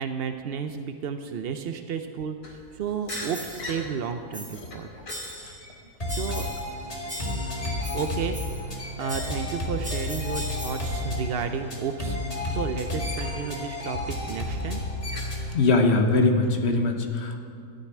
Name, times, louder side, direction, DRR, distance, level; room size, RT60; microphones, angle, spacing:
voice 1, 0.0-4.9 6.1-6.5 7.9-8.4 8.7-14.8, right 6 dB, 75° right, 7 dB, 0.5 m, -32 dB
sound 1, 2.4-12.5 13.0-15.5, left 1 dB, 65° left, 2.9 m, -43 dB
sound 2, 3.1-3.7 4.3-4.7 5.1-5.7 6.1-6.8 7.1-8.7 9.1-11.0, equal, 5° right, 1.1 m, -39 dB
sound 3, 6.0-15.6, left 2 dB, 25° left, 1.8 m, -32 dB
voice 2, 15.5-17.4, left 3 dB, 45° left, 4 dB, 1.1 m, -21 dB
13.0 x 6.7 x 9.1 m, 2.4 s
omnidirectional pair, 1.7 m